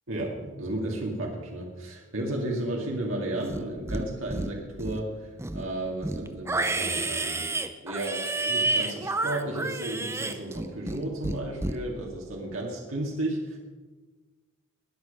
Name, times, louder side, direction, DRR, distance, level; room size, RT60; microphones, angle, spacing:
voice 1, 0.1-13.6, right 1 dB, 85° right, -1 dB, 2.1 m, -33 dB
Livestock farm animals working animals, 3.4-4.0 4.3-5.0 5.4-11.0 11.2-11.8, right 2 dB, 15° right, 0.6 m, -30 dB
20.5 x 7.0 x 5.4 m, 1.3 s
head